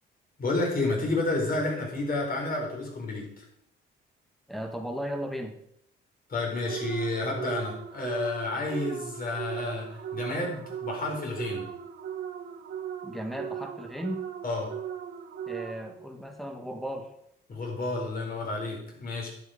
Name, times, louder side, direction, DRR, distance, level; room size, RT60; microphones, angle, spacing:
voice 1, 0.4-3.4 6.3-11.6 14.4-14.7 17.5-19.3, left 2 dB, 45° left, -1 dB, 4.7 m, -30 dB
voice 2, 4.5-5.6 13.0-14.2 15.5-17.1, equal, ahead, 5 dB, 1.7 m, -35 dB
sound 1, 6.7-16.1, right 9 dB, 80° right, 1.9 m, -38 dB
10.5 x 8.2 x 5.2 m, 0.73 s
cardioid pair, 90°, 20 cm